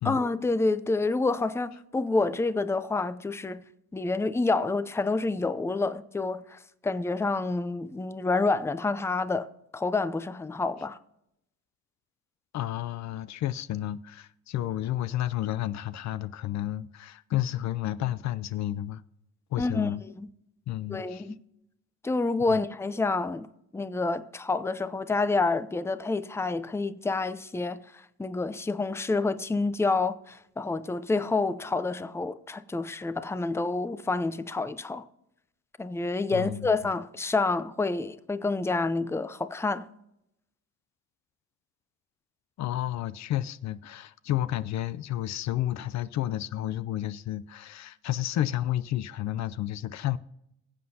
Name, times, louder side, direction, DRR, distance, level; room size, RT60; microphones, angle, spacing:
voice 1, 0.0-3.6 3.9-9.5 9.7-11.0 19.6-20.3 20.9-21.4 22.0-23.5 23.7-27.8 28.2-35.0 35.8-39.9, left 3 dB, 10° left, 0.5 m, -28 dB
voice 2, 12.5-19.0 19.5-20.0 20.7-21.3 22.5-22.6 36.3-36.7 42.6-50.2, left 13 dB, 65° left, 0.5 m, -31 dB
21.5 x 7.7 x 2.8 m
cardioid pair, 90°, 30 cm